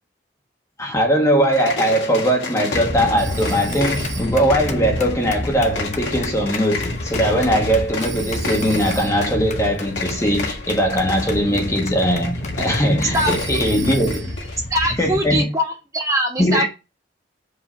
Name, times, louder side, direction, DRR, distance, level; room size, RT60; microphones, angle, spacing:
voice 1, 0.8-14.3 15.0-15.5 16.4-16.7, equal, 15° left, 1.2 m, -20 dB
sound 1, 1.4-14.6, left 3 dB, 85° left, 1.9 m, -32 dB
sound 2, 2.7-15.4, left 1 dB, 40° left, 0.9 m, -29 dB
Telephone, 3.2-4.6 8.0-9.4 13.1-14.5, right 7 dB, 80° right, 1.1 m, -36 dB
voice 2, 13.1-13.9 14.7-16.7, equal, 20° right, 1.2 m, -22 dB
4.9 x 3.7 x 5.5 m
head